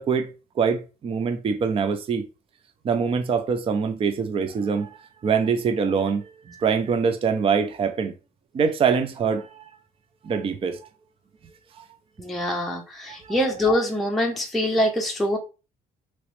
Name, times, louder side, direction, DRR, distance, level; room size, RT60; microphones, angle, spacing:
voice 1, 0.0-2.2 2.8-8.1 8.5-9.7 10.2-10.8 13.2-13.5, right 6 dB, 35° right, 0.5 m, -24 dB
voice 2, 12.2-15.4, left 1 dB, ahead, 0.7 m, -24 dB
3.0 x 3.0 x 3.0 m
cardioid pair, 110°, 17 cm